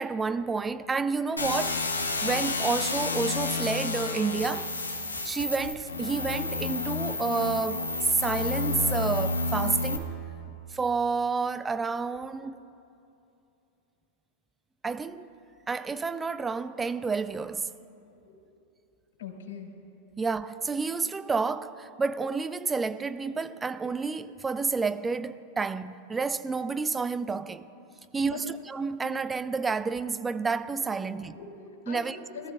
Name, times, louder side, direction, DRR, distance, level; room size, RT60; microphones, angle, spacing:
voice 1, 0.0-1.9 2.2-4.7 5.2-10.2 10.5-12.6 14.8-15.3 15.7-17.7 20.2-27.7 28.1-31.4 31.9-32.2, right 4 dB, 15° right, 0.4 m, -30 dB
sound 1, 1.4-10.0, left 3 dB, 90° left, 1.2 m, -30 dB
voice 2, 19.2-19.7 28.2-28.4 31.3-32.5, left 7 dB, 70° left, 2.8 m, -42 dB
22.0 x 14.0 x 2.3 m
hypercardioid pair, 95°, 0 cm